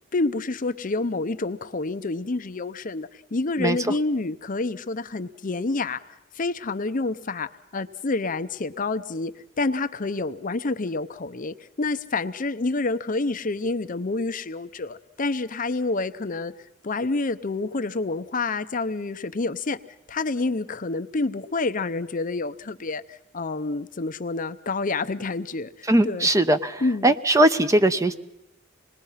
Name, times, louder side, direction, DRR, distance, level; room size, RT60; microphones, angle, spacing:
voice 1, 0.1-16.5 16.8-19.8 20.1-26.3 26.8-27.1, left 3 dB, 45° left, 11 dB, 0.7 m, -28 dB
voice 2, 25.9-28.1, right 1 dB, 15° right, 10 dB, 0.8 m, -20 dB
26.5 x 20.5 x 5.7 m, 0.89 s
head